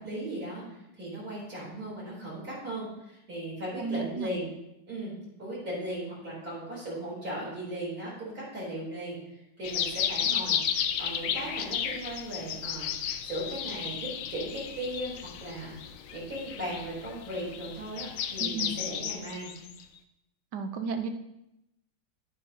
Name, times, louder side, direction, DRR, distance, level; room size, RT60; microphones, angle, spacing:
voice 1, 0.0-4.5 4.9-5.1 5.4-9.2 9.6-15.8 16.1-19.5, right 1 dB, 50° right, -7 dB, 4.2 m, -37 dB
voice 2, 3.8-4.3 18.4-18.7 20.5-21.1, right 5 dB, 70° right, 7 dB, 1.3 m, -33 dB
sound 1, 9.6-19.8, left 8 dB, 70° left, 0.8 m, -33 dB
10.5 x 10.0 x 2.8 m, 0.87 s
omnidirectional pair, 2.0 m